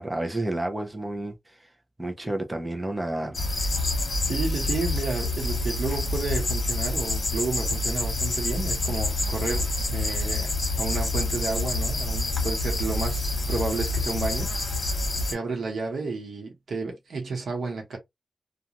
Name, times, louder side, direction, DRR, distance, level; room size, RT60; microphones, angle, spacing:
voice 1, 0.0-1.7 2.0-3.5, right 1 dB, 15° right, 0.6 m, -31 dB
sound 1, 3.3-15.3, left 2 dB, 50° left, 1.0 m, -27 dB
voice 2, 4.3-14.5 15.3-18.0, right 4 dB, 85° right, 0.9 m, -31 dB
2.4 x 2.3 x 2.9 m
wide cardioid pair, 155°, 0 cm